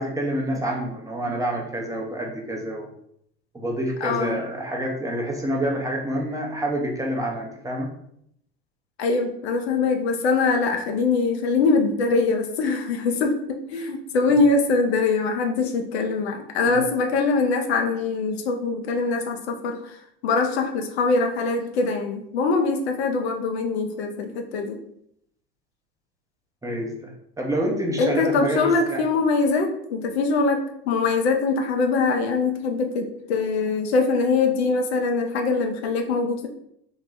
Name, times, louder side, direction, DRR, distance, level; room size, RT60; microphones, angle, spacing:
voice 1, 0.0-2.9 3.5-7.9 16.7-16.8 26.6-29.0, right 1 dB, 10° right, -1 dB, 0.8 m, -27 dB
voice 2, 4.0-4.4 9.0-20.0 20.2-24.8 28.0-36.5, left 4 dB, 75° left, 4 dB, 0.6 m, -23 dB
3.0 x 2.3 x 3.7 m, 0.72 s
hypercardioid pair, 75°, 32 cm